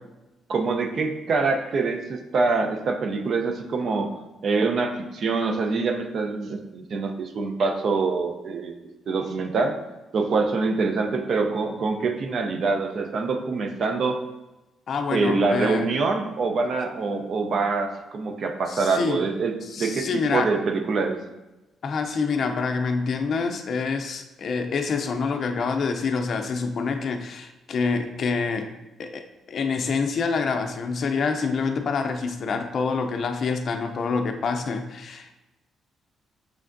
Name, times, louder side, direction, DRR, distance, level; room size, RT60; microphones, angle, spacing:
voice 1, 0.5-4.1 4.4-8.7 9.1-9.7 10.1-14.2 15.1-21.2, right 4 dB, 55° right, 5 dB, 0.6 m, -25 dB
voice 2, 14.9-15.9 18.7-19.3 19.6-20.5 21.8-28.7 29.0-35.3, left 5 dB, 55° left, 6 dB, 0.4 m, -27 dB
6.3 x 3.3 x 2.6 m, 1.0 s
cardioid pair, 90°, 0 cm